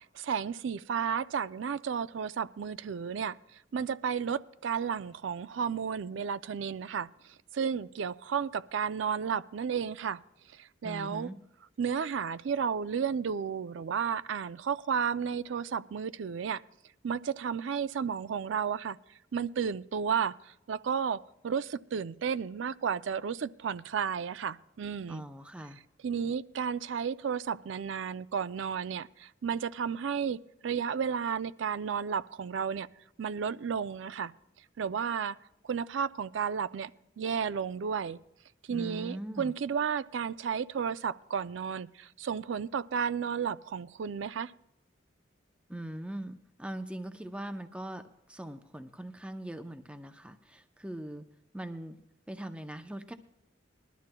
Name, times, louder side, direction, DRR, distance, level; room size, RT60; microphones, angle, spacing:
voice 1, 0.1-3.4 3.7-7.1 7.5-10.2 10.5-11.3 11.8-16.6 17.0-19.0 19.3-25.2 26.0-32.9 33.2-34.3 34.8-35.4 35.6-36.9 37.2-38.2 38.7-44.5, right 7 dB, 70° right, 16 dB, 0.4 m, -32 dB
voice 2, 10.8-11.4 25.1-25.8 38.7-39.5 45.7-51.2 51.5-52.0 52.3-53.1, right 1 dB, 5° right, 7 dB, 0.5 m, -41 dB
21.0 x 12.5 x 2.2 m, 0.85 s
head